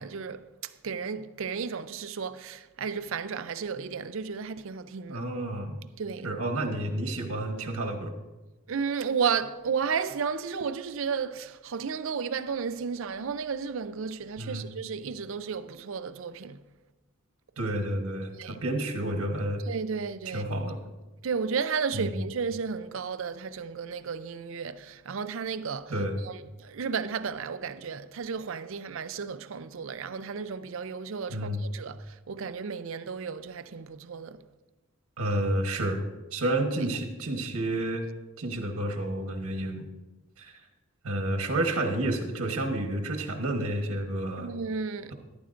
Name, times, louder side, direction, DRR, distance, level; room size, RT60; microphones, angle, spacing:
voice 1, 0.0-5.2 6.0-6.3 8.7-16.6 18.4-18.6 19.7-20.5 21.2-25.9 26.2-34.4 44.4-45.1, right 6 dB, 65° right, 0.5 m, -33 dB
voice 2, 5.1-5.8 6.2-8.1 14.4-14.6 17.6-19.6 20.2-20.8 21.9-22.3 25.9-26.2 31.3-31.6 35.2-36.0 36.3-38.0 38.4-39.9 40.4-40.6 41.0-44.5, right 1 dB, 85° right, 1.2 m, -30 dB
13.5 x 11.5 x 2.6 m
head